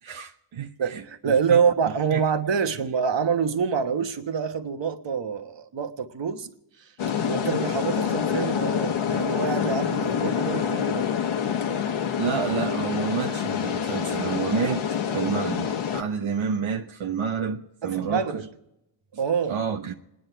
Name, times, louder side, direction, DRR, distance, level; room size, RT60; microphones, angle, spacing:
voice 1, 0.0-2.2 12.2-18.4 19.5-19.9, right 6 dB, 80° right, 1.0 m, -30 dB
voice 2, 0.8-6.5 6.8-6.9 7.2-11.1 17.8-18.5 19.2-19.6, right 6 dB, 65° right, 1.3 m, -26 dB
sound 1, 7.0-16.0, left 8 dB, 85° left, 1.3 m, -26 dB
28.5 x 10.5 x 4.6 m
wide cardioid pair, 110°, 47 cm